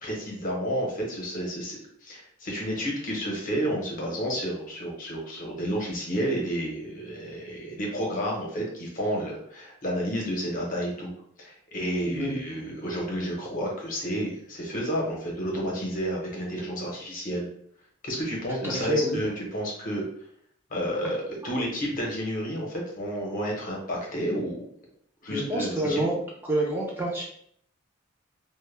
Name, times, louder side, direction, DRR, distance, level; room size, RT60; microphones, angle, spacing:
voice 1, 0.0-11.1 11.4-17.5 18.0-20.0 20.7-24.7 25.2-26.0, equal, 40° left, -2 dB, 0.7 m, -31 dB
voice 2, 12.0-12.4 18.6-19.1 25.3-26.2 26.5-27.3, right 1 dB, 10° right, -4 dB, 0.4 m, -27 dB
2.1 x 2.0 x 3.1 m, 0.67 s
head